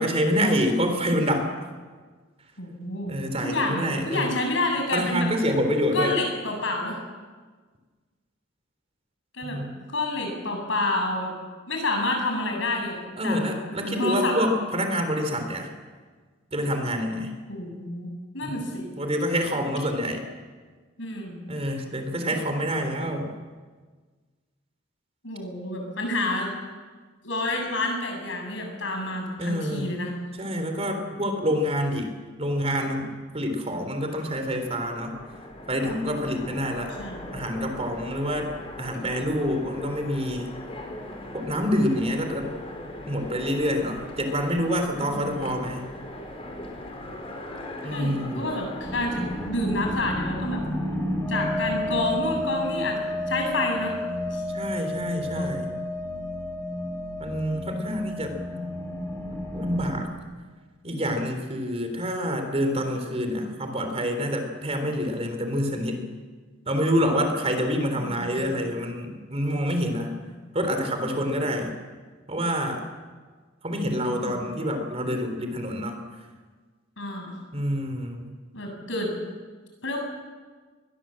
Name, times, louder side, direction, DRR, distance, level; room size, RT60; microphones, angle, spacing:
voice 1, 0.0-1.7 3.1-4.3 4.9-6.1 9.4-9.8 13.2-15.7 16.5-17.3 18.4-20.2 21.5-23.3 29.4-29.9 30.4-32.1 32.4-35.2 35.7-36.9 37.3-40.6 41.3-42.5 43.1-45.9 47.8-48.5 54.5-55.7 57.2-58.4 59.5-60.1 60.8-66.0 66.7-70.1 70.5-71.7 72.3-72.8 73.6-76.0 77.5-78.2, equal, 30° right, 6 dB, 3.6 m, -27 dB
voice 2, 2.6-3.1 3.4-5.3 5.9-7.0 9.3-9.6 9.9-11.3 11.7-13.4 13.8-14.4 17.5-18.9 21.0-21.4 22.8-22.9 25.2-26.5 27.2-30.1 37.0-37.2 39.0-39.1 45.0-45.4 47.9-50.6 51.3-53.0 53.3-54.0 54.3-54.4 55.0-55.5 68.0-68.6 74.0-74.4 77.0-77.3 78.5-79.1 79.8-80.0, left 2 dB, 70° left, 2 dB, 7.0 m, -29 dB
Train, 34.1-49.5, left 1 dB, 30° left, 4.3 m, -40 dB
sound 1, 48.8-60.0, left 1 dB, 15° left, 5.3 m, -31 dB
23.5 x 21.0 x 7.7 m, 1.4 s
head